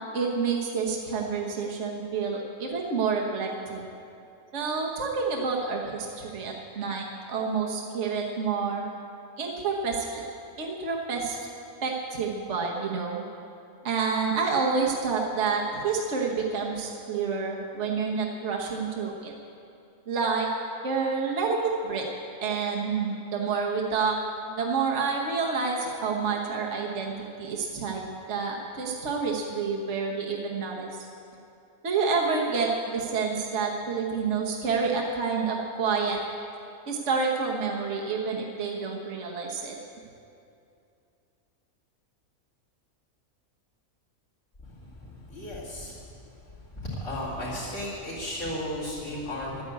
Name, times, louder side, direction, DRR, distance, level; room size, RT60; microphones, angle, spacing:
voice 1, 0.1-3.9 4.5-8.8 9.4-10.2 10.6-11.5 11.8-13.2 13.8-19.3 20.1-20.5 20.8-22.1 22.4-24.1 24.5-31.1 31.8-36.2 36.9-39.8, right 5 dB, 55° right, -1 dB, 1.4 m, -28 dB
voice 2, 44.6-49.6, left 1 dB, 50° left, -12 dB, 3.4 m, -35 dB
12.0 x 9.4 x 8.3 m, 2.6 s
omnidirectional pair, 1.5 m